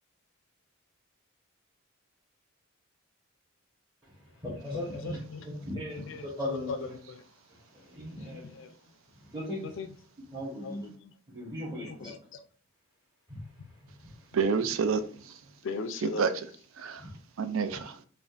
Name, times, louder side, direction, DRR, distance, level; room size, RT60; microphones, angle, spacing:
voice 1, 4.0-5.2 5.4-6.9 7.5-8.7 9.2-9.7 10.3-10.9 11.3-12.1 13.3-13.4 13.8-14.3 17.0-17.2, left 1 dB, 20° right, 1.2 m, -38 dB
voice 2, 4.7-5.5 5.7-7.3 8.1-9.0 9.6-10.0 10.6-11.1 11.7-12.4 13.6-13.7 14.9-15.0 15.6-16.6, left 4 dB, 65° left, 0.4 m, -40 dB
voice 3, 14.3-15.4 16.0-16.3 16.7-17.1 17.4-18.0, right 5 dB, 75° right, 0.4 m, -29 dB
5.0 x 2.5 x 2.5 m
head